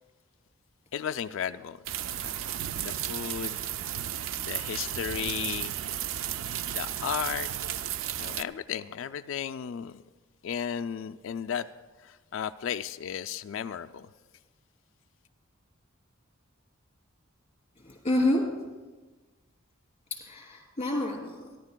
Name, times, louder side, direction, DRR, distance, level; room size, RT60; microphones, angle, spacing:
voice 1, 0.9-1.8 2.2-2.4 2.8-3.6 4.4-5.8 6.7-7.5 8.2-10.0 10.4-11.7 12.0-14.1, left 8 dB, 65° left, 0.3 m, -34 dB
sound 1, 1.9-8.4, right 11 dB, 70° right, 0.4 m, -33 dB
voice 2, 17.8-18.7 20.1-21.4, left 1 dB, 25° left, 3.1 m, -29 dB
28.0 x 11.0 x 2.2 m
head